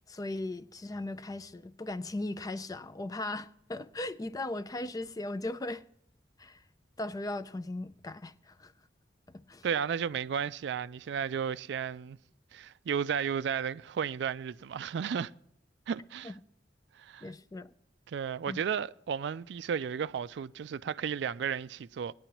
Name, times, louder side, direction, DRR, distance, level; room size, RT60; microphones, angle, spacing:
voice 1, 0.1-5.8 6.4-6.6 7.0-8.7 9.5-9.7 16.2-16.3 17.2-17.7 18.5-18.6, left 2 dB, 20° left, 0.4 m, -38 dB
voice 2, 9.6-12.2 12.5-15.3 15.9-16.3 17.0-17.3 18.1-22.1, right 7 dB, 70° right, 0.3 m, -33 dB
18.5 x 10.0 x 3.0 m
head